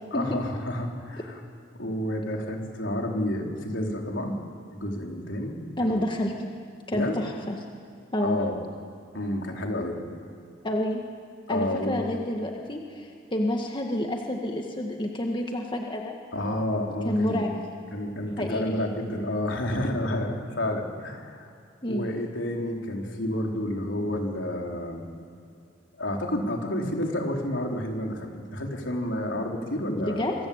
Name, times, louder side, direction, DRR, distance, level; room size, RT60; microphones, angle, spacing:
voice 1, 0.1-1.4 1.8-4.4 4.7-6.0 6.9-7.2 8.2-8.6 9.1-10.0 11.5-12.1 16.3-17.5 17.9-21.5 21.9-25.0 26.0-30.3, left 1 dB, 70° left, 1 dB, 4.4 m, -30 dB
voice 2, 5.8-6.5 6.9-7.6 8.1-8.4 10.6-11.0 11.5-16.2 17.0-17.5 18.4-18.6 21.8-22.1 30.0-30.4, left 1 dB, 25° left, 1 dB, 1.9 m, -28 dB
26.5 x 23.5 x 9.0 m, 2.5 s
head